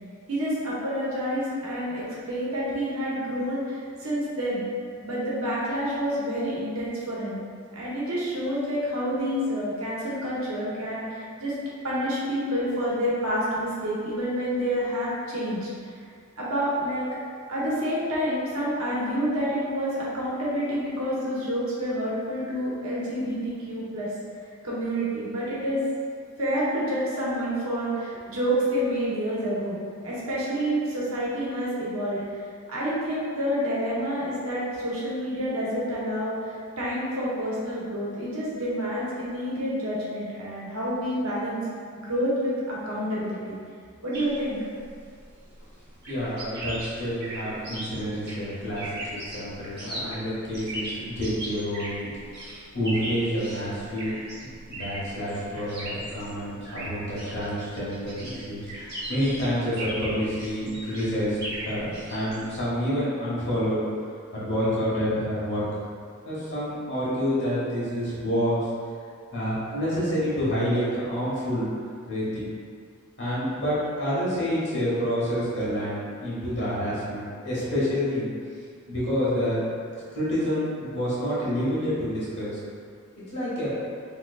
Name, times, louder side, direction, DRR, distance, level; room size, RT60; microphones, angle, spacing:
voice 1, 0.3-4.6 5.0-7.4 7.7-11.6 11.8-15.7 16.4-17.1 17.5-24.1 24.6-25.8 26.4-32.2 32.7-41.6 42.0-43.6 44.0-44.6, equal, 80° right, -7 dB, 1.0 m, -28 dB
sound 1, 44.1-62.6, right 1 dB, 50° right, 1.2 m, -38 dB
voice 2, 46.1-52.1 52.7-54.1 54.4-63.8 64.3-65.6 66.2-68.7 69.3-71.7 72.1-72.3 73.2-78.3 78.9-79.6 80.1-82.6 83.3-83.8, equal, 55° left, -9 dB, 1.3 m, -28 dB
3.6 x 3.0 x 2.3 m, 2.2 s
head